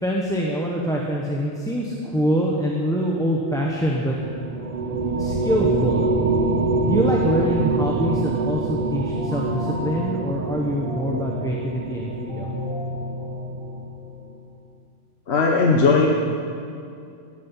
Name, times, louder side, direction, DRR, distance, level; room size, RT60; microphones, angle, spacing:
voice 1, 0.0-4.2 5.1-6.1 6.8-12.5, equal, 5° left, -2 dB, 1.2 m, -25 dB
sound 1, 4.2-13.9, right 3 dB, 35° right, 0.7 m, -25 dB
sound 2, 8.8-14.3, left 2 dB, 20° left, 4.5 m, -34 dB
voice 2, 15.3-16.1, left 4 dB, 60° left, 1 dB, 1.3 m, -18 dB
15.5 x 14.0 x 5.8 m, 2.4 s
omnidirectional pair, 1.2 m